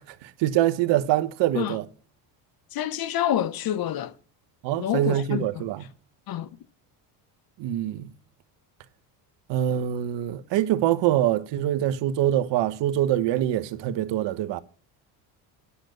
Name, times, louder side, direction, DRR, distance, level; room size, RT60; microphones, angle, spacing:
voice 1, 0.0-1.8 4.6-5.9 7.6-8.1 9.5-14.6, right 12 dB, 65° right, 1.1 m, -24 dB
voice 2, 2.7-4.1 4.8-5.7 6.3-6.5, left 11 dB, 50° left, 0.9 m, -27 dB
10.0 x 6.7 x 7.8 m
supercardioid pair, 90°, 48 cm